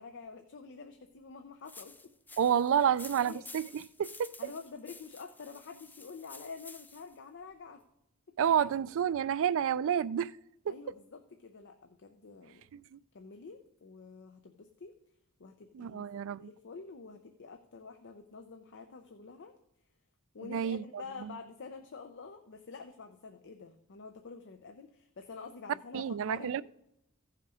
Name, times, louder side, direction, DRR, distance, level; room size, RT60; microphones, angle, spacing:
voice 1, 0.0-2.4 2.8-3.4 4.4-7.8 8.3-8.4 10.7-12.6 13.1-15.0 15.4-16.0 16.4-19.5 20.3-26.6, left 4 dB, 55° left, 0.6 m, -48 dB
sound 1, 1.7-7.2, left 3 dB, 10° left, 0.4 m, -51 dB
voice 2, 2.4-4.3 8.4-10.3 12.7-13.0 15.7-16.5 20.5-20.8 21.2-21.3 25.9-26.6, right 8 dB, 65° right, 0.3 m, -29 dB
15.0 x 5.7 x 4.9 m
head